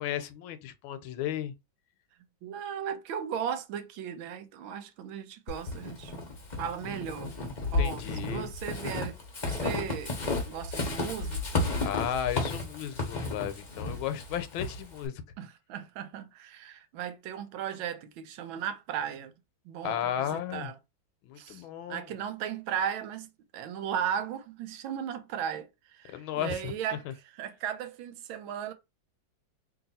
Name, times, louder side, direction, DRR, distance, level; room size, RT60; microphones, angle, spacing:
voice 1, 0.0-1.5 7.6-8.5 11.8-15.2 19.8-20.7 21.2-22.1 26.1-26.7 27.0-27.1, left 10 dB, 80° left, 1.4 m, -34 dB
voice 2, 2.4-6.1 6.6-7.3 7.7-10.2 10.5-11.6 15.4-19.3 19.7-20.7 21.4-21.6 21.9-27.0 27.4-28.7, right 9 dB, 85° right, 1.4 m, -36 dB
Walk footsteps / Squeak, 5.5-15.1, left 2 dB, 40° left, 0.6 m, -33 dB
2.9 x 2.8 x 4.0 m
omnidirectional pair, 2.2 m